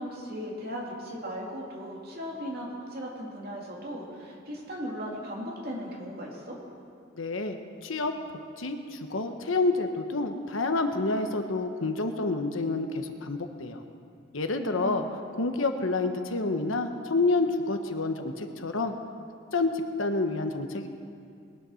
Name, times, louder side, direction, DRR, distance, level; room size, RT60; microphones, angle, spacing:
voice 1, 0.0-6.6 14.6-15.2, equal, 50° right, -3 dB, 2.6 m, -37 dB
voice 2, 7.2-8.1 8.6-13.8 14.3-15.0 15.3-18.9 19.5-20.9, left 3 dB, 80° left, 6 dB, 1.0 m, -28 dB
21.0 x 8.1 x 6.4 m, 2.3 s
head